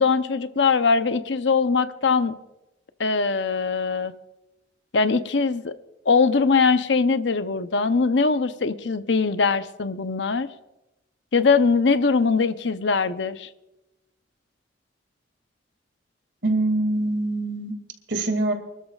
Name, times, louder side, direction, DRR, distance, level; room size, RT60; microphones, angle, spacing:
voice 1, 0.0-2.3 3.0-4.1 4.9-5.7 6.1-10.5 11.3-13.5, left 4 dB, 80° left, 11 dB, 0.8 m, -21 dB
voice 2, 16.4-17.8 18.1-18.5, right 2 dB, 85° right, 5 dB, 2.5 m, -24 dB
29.5 x 13.0 x 2.4 m, 0.98 s
head